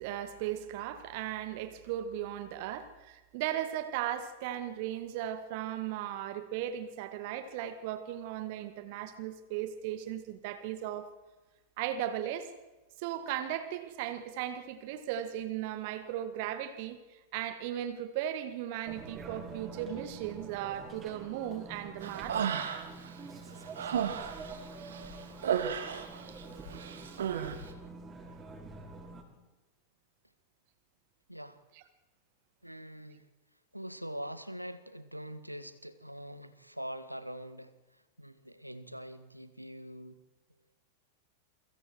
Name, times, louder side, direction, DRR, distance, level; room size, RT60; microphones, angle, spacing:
voice 1, 0.0-11.1 11.8-12.5 13.0-22.4 31.7-31.8, right 11 dB, 50° right, 11 dB, 2.1 m, -37 dB
sound 1, 18.9-29.2, right 3 dB, 20° right, 6.2 m, -46 dB
Human voice, 22.0-23.1 23.5-26.4 26.7-27.6, right 8 dB, 65° right, 2.7 m, -34 dB
voice 2, 32.6-33.3 33.7-37.7 38.2-40.2, equal, 90° right, 13 dB, 1.8 m, -43 dB
29.5 x 24.5 x 4.7 m, 1.1 s
figure-of-eight pair, 90°, 0 cm